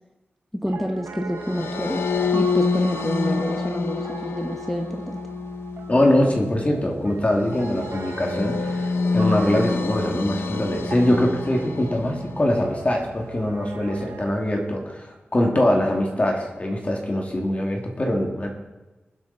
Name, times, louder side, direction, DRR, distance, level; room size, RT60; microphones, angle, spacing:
voice 1, 0.5-2.0 2.3-5.2, equal, 5° left, 4 dB, 1.0 m, -28 dB
Piano, 0.6-14.3, right 5 dB, 85° right, 1.4 m, -40 dB
sound 1, 1.4-12.8, left 4 dB, 80° left, 0.9 m, -28 dB
voice 2, 5.9-15.1 15.3-18.5, left 1 dB, 35° left, 0 dB, 2.7 m, -23 dB
23.0 x 8.2 x 4.3 m, 1.1 s
wide cardioid pair, 80°, 4 cm